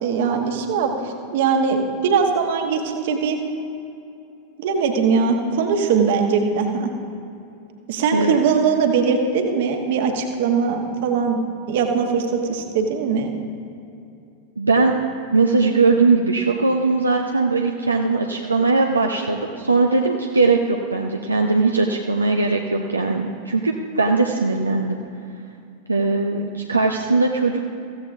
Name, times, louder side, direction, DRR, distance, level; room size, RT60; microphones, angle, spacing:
voice 1, 0.0-3.4 4.6-6.9 7.9-11.4 11.7-13.3, right 5 dB, 55° right, 4 dB, 1.3 m, -21 dB
voice 2, 14.6-14.9 15.3-25.0 25.9-27.6, right 3 dB, 80° right, 2 dB, 0.6 m, -20 dB
15.5 x 14.0 x 2.6 m, 2.6 s
figure-of-eight pair, 90°, 0 cm